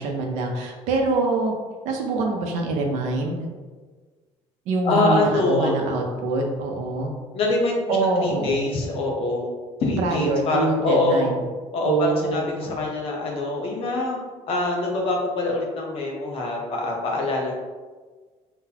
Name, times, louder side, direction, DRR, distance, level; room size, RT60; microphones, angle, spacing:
voice 1, 0.0-1.5 1.8-3.5 4.7-7.1 7.9-8.6 10.0-11.4 11.9-12.7, right 3 dB, 80° right, 2 dB, 0.6 m, -24 dB
voice 2, 4.8-5.7 7.3-9.5 9.8-11.3 11.7-14.2 14.5-17.5, left 2 dB, 55° left, -1 dB, 0.8 m, -24 dB
3.9 x 2.1 x 2.8 m, 1.4 s
cardioid pair, 130°, 12 cm